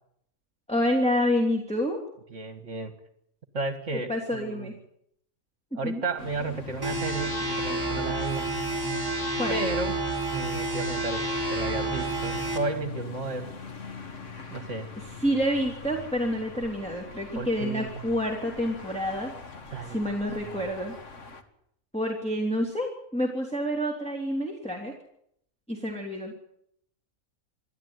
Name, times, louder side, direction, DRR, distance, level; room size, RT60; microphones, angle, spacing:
voice 1, 0.7-2.0 4.1-4.7 5.7-6.0 9.4-9.6 15.0-19.3 19.8-20.9 21.9-24.9 25.7-26.3, equal, 5° left, 0 dB, 3.0 m, -28 dB
voice 2, 2.3-3.0 3.5-4.8 5.7-8.6 9.5-9.9 10.3-13.5 14.5-14.9 17.4-18.2 19.7-20.0 20.4-20.7, right 3 dB, 55° right, 8 dB, 2.0 m, -33 dB
sound 1, 6.2-21.4, left 4 dB, 60° left, 2.1 m, -43 dB
sound 2, 6.8-12.6, right 2 dB, 15° right, 4.2 m, -29 dB
27.5 x 12.0 x 9.6 m, 0.73 s
omnidirectional pair, 1.5 m